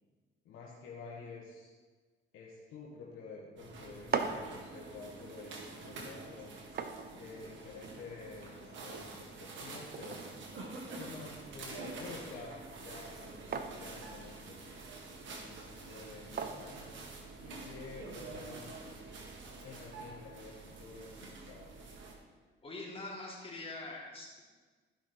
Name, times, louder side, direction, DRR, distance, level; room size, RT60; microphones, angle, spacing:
voice 1, 0.4-1.7 2.3-6.6 7.1-10.3 10.9-14.9 15.2-16.9 17.4-18.8 19.6-21.7, left 4 dB, 85° left, -4 dB, 1.7 m, -50 dB
sound 1, 3.6-22.1, right 3 dB, 70° right, 2.0 m, -47 dB
sound 2, 3.8-17.7, right 5 dB, 50° right, 0.9 m, -44 dB
voice 2, 22.6-24.4, left 2 dB, 30° left, -4 dB, 3.3 m, -43 dB
14.5 x 6.0 x 4.5 m, 1.4 s
cardioid pair, 90°, 20 cm